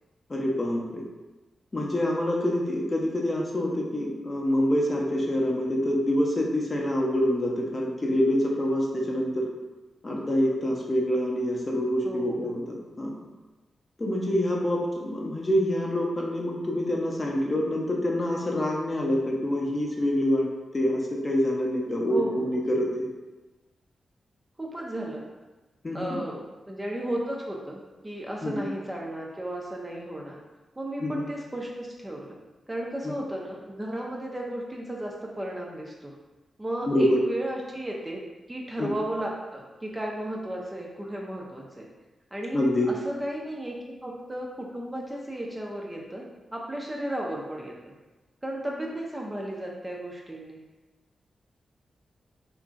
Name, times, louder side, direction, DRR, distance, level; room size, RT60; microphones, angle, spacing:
voice 1, 0.3-1.0 1.7-9.4 10.0-13.1 14.0-20.4 20.7-23.1 25.8-26.2 28.4-28.7 31.0-31.3 33.0-33.2 36.8-37.2 38.8-38.9 42.5-42.9, left 1 dB, 30° left, -2 dB, 0.5 m, -26 dB
voice 2, 12.0-12.5 22.1-22.5 24.6-25.2 25.9-26.4 26.7-30.4 30.8-32.4 32.7-36.1 36.6-38.2 38.5-41.9 42.3-42.6 42.9-46.2 46.5-47.7 48.4-50.6, right 1 dB, 15° right, -2 dB, 0.4 m, -34 dB
2.8 x 2.5 x 2.4 m, 1.2 s
cardioid pair, 85°, 0 cm